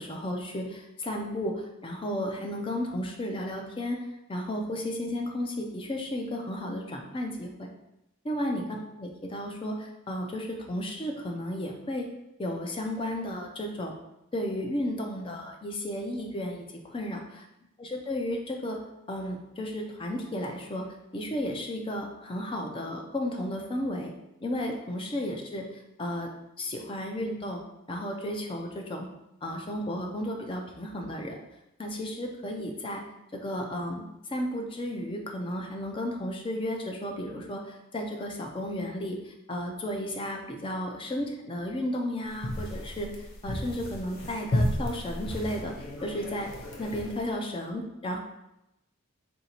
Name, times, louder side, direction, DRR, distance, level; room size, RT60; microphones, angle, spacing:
voice 1, 0.0-7.7 8.2-12.1 12.4-13.9 14.3-17.5 17.8-18.8 19.1-20.8 21.1-24.1 24.4-26.3 26.6-27.6 27.9-29.1 29.4-31.4 31.8-33.0 33.3-46.5 46.8-48.2, left 1 dB, 25° left, 1 dB, 0.4 m, -33 dB
sound 1, 42.3-47.4, left 1 dB, 80° left, 0.7 m, -33 dB
3.8 x 2.7 x 4.3 m, 0.88 s
head